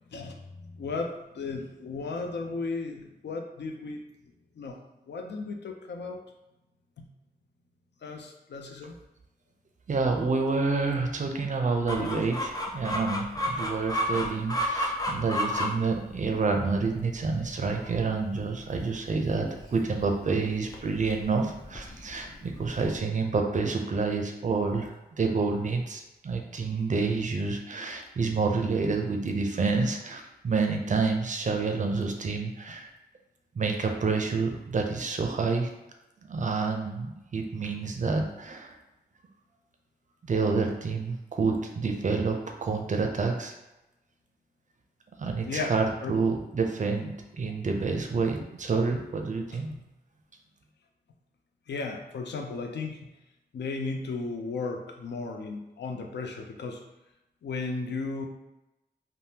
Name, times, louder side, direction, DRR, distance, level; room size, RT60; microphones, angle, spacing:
voice 1, 0.1-4.0 4.6-4.8 5.1-6.2 7.0-7.1 8.0-8.9 12.0-12.2 15.0-15.2 45.5-45.7 46.0-46.1 49.5-49.8 51.7-53.1 53.5-56.8 57.4-58.2, left 3 dB, 85° left, 3 dB, 0.4 m, -35 dB
voice 2, 9.9-32.9 33.6-35.7 36.3-38.7 40.3-43.5 45.2-49.7, right 4 dB, 45° right, 3 dB, 0.4 m, -28 dB
Chicken rooster, 11.9-23.0, equal, 20° left, 0.4 m, -34 dB
3.3 x 2.0 x 2.7 m, 0.95 s
wide cardioid pair, 130°, 17 cm